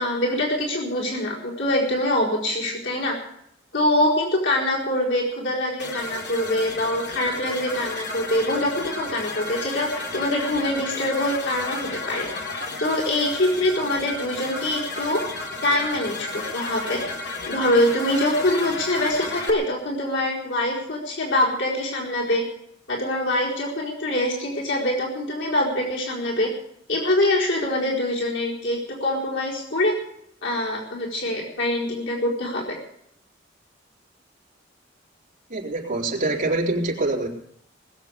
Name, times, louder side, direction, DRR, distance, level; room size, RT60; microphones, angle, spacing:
voice 1, 0.0-3.1 3.7-12.3 12.8-15.2 15.6-17.0 17.5-22.4 22.9-26.5 26.9-30.0 30.4-32.6, left 1 dB, 85° left, -4 dB, 4.4 m, -24 dB
sound 1, 5.8-19.5, left 3 dB, 60° left, 2.8 m, -33 dB
voice 2, 35.5-37.3, right 2 dB, 45° right, -1 dB, 3.8 m, -25 dB
20.0 x 8.1 x 8.1 m, 0.72 s
head